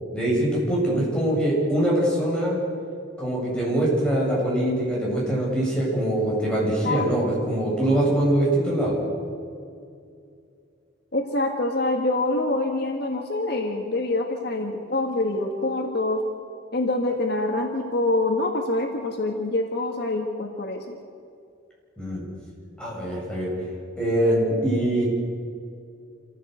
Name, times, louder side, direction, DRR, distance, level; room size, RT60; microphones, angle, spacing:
voice 1, 0.1-2.6 3.2-9.0 22.0-22.2 22.8-23.5 24.0-25.0, right 1 dB, 5° left, -5 dB, 7.6 m, -23 dB
voice 2, 11.1-16.2 16.7-21.0, left 2 dB, 55° left, 3 dB, 1.8 m, -25 dB
27.0 x 15.5 x 8.1 m, 2.4 s
head